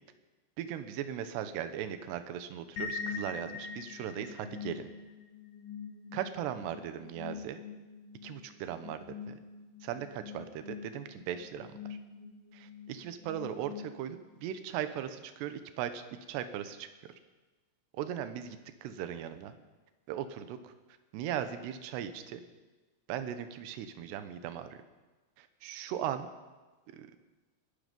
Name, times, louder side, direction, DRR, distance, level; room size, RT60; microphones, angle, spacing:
voice 1, 0.6-4.9 6.1-7.6 8.2-9.0 9.3-9.4 9.9-10.1 10.3-12.0 12.5-16.0 16.3-16.9 17.9-19.5 20.1-20.7 21.1-22.4 23.1-24.8 25.4-26.3 26.9-27.1, right 10 dB, 75° right, 10 dB, 3.0 m, -38 dB
sound 1, 2.8-14.4, left 5 dB, 50° left, 2.5 m, -44 dB
21.5 x 12.0 x 5.3 m, 1.2 s
omnidirectional pair, 5.2 m